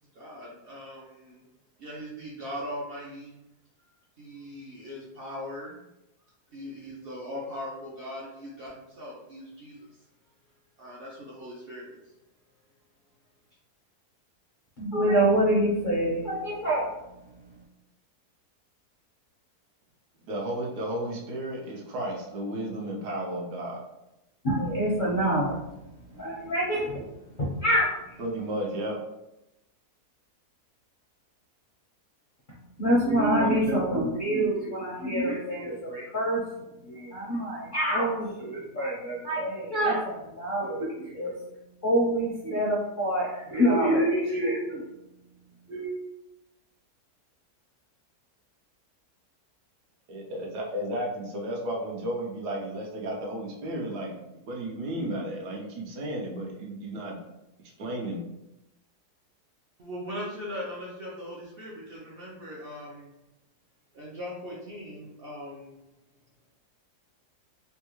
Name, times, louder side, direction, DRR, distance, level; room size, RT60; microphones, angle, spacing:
voice 1, 0.1-1.4 1.8-3.4 4.2-5.8 6.5-9.9 10.8-12.0 59.8-63.2 63.9-65.7, equal, 65° right, -4 dB, 0.5 m, -39 dB
voice 2, 14.8-17.6 24.4-28.2 32.5-41.4 41.8-44.8 45.7-45.9, right 1 dB, 55° left, -6 dB, 0.5 m, -27 dB
voice 3, 20.3-23.8 28.2-29.0 50.1-54.2 54.5-57.2 57.8-58.2, right 1 dB, 85° right, -1 dB, 1.3 m, -33 dB
3.4 x 2.3 x 3.0 m, 0.91 s
omnidirectional pair, 1.7 m